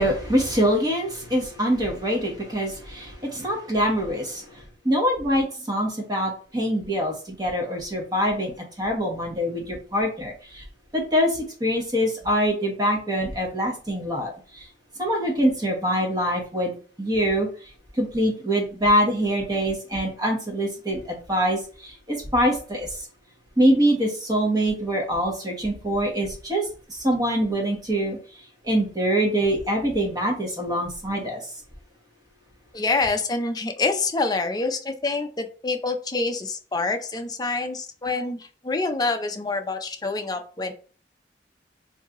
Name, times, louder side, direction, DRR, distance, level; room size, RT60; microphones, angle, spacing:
voice 1, 0.0-10.6 10.9-14.7 15.0-17.5 17.9-22.9 23.6-28.2 28.6-31.5, equal, 25° right, 0 dB, 1.1 m, -24 dB
voice 2, 32.7-40.7, left 3 dB, 25° left, 5 dB, 0.5 m, -26 dB
3.2 x 2.7 x 3.6 m, 0.40 s
head